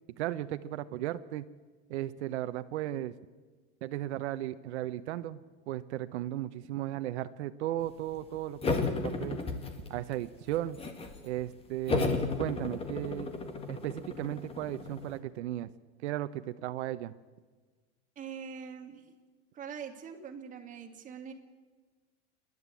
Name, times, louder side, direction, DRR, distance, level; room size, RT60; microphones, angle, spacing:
voice 1, 0.2-1.5 1.9-3.1 3.8-9.4 9.9-10.8 11.2-13.3 13.7-15.7 16.0-17.1, right 13 dB, 85° right, 11 dB, 0.9 m, -35 dB
sound 1, 8.6-10.1 10.5-11.2 11.9-15.2, left 4 dB, 15° left, 1.7 m, -33 dB
voice 2, 18.2-19.1 19.5-21.3, right 7 dB, 25° right, 4 dB, 2.0 m, -43 dB
28.5 x 11.0 x 8.3 m, 1.4 s
supercardioid pair, 150°, 33 cm